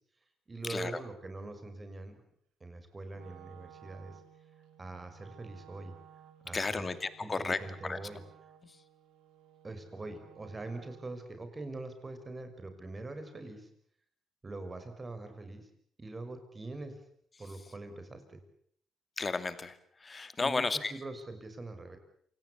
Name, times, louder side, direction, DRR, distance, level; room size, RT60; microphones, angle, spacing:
voice 1, 0.5-2.1 2.6-4.2 4.8-5.9 6.4-6.9 7.2-8.2 9.6-13.7 14.4-15.6 16.0-16.9 17.4-18.4 20.4-22.0, right 2 dB, 25° right, 8 dB, 6.0 m, -43 dB
Wind instrument woodwind instrument, 3.1-11.3, right 9 dB, 90° right, 2.5 m, -57 dB
voice 2, 6.5-8.0 19.2-20.9, left 4 dB, 30° left, 12 dB, 2.4 m, -33 dB
28.0 x 18.5 x 8.6 m, 0.64 s
cardioid pair, 90°, 0 cm